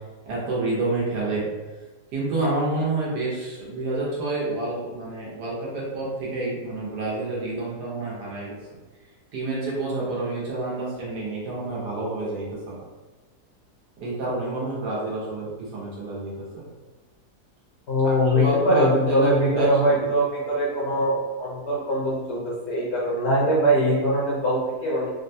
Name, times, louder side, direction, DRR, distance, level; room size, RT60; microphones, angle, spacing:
voice 1, 0.3-1.5 2.1-8.6 9.3-12.8 14.0-16.6 18.0-20.1, right 2 dB, 85° right, -5 dB, 1.6 m, -28 dB
voice 2, 17.9-25.1, equal, 55° left, -6 dB, 0.8 m, -22 dB
3.7 x 2.2 x 2.6 m, 1.3 s
omnidirectional pair, 1.7 m